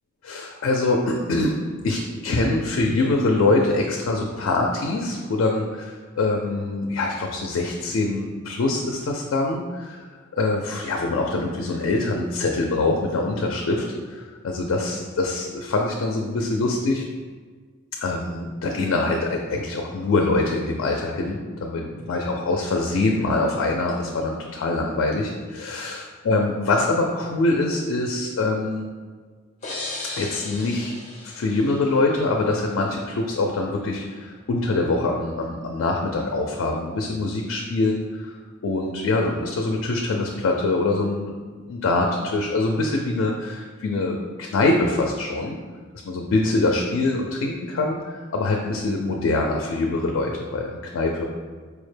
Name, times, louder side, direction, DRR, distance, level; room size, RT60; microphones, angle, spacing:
voice 1, 0.2-1.5 1.8-10.0 10.3-17.0 18.0-28.9 30.2-30.9 31.2-41.3 41.7-45.6 46.1-51.2, left 2 dB, 80° left, 1 dB, 0.4 m, -24 dB
sound 1, 29.6-32.4, left 2 dB, 35° left, 0.6 m, -36 dB
4.6 x 2.1 x 3.2 m, 1.5 s
head